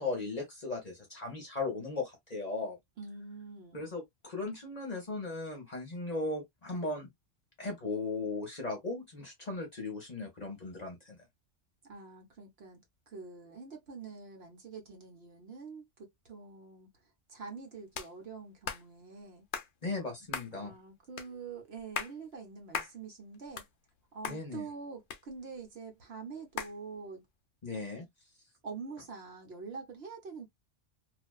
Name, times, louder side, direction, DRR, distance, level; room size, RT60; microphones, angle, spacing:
voice 1, 0.0-2.8 3.7-7.1 7.6-11.2 19.8-20.7 24.3-24.7 27.6-28.1, left 3 dB, 40° left, 0.9 m, -37 dB
voice 2, 3.0-3.9 11.9-16.9 17.3-19.4 20.6-23.6 24.1-27.2 28.6-30.5, right 4 dB, 60° right, 1.1 m, -45 dB
sound 1, 17.9-18.1 18.7-18.8 19.5-19.7 20.3-20.5 21.2-21.3 21.8-22.2 22.7-22.9 23.3-24.0 24.2-24.4 25.1-25.7 26.6-26.8, left 7 dB, 60° left, 0.5 m, -37 dB
2.5 x 2.3 x 2.2 m
omnidirectional pair, 1.3 m